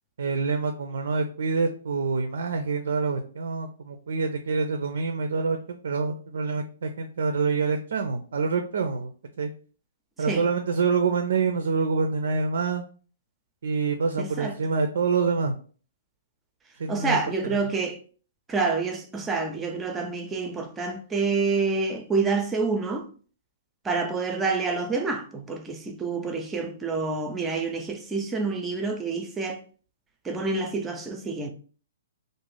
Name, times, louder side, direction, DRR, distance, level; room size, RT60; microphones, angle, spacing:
voice 1, 0.2-9.5 10.2-12.8 13.6-15.5 16.8-17.2, right 4 dB, 70° right, 0.4 m, -26 dB
voice 2, 14.2-14.5 16.9-18.0 18.5-23.1 23.8-29.6 30.2-31.5, right 4 dB, 15° right, 0.5 m, -28 dB
2.5 x 2.0 x 3.2 m
hypercardioid pair, 130°, 0 cm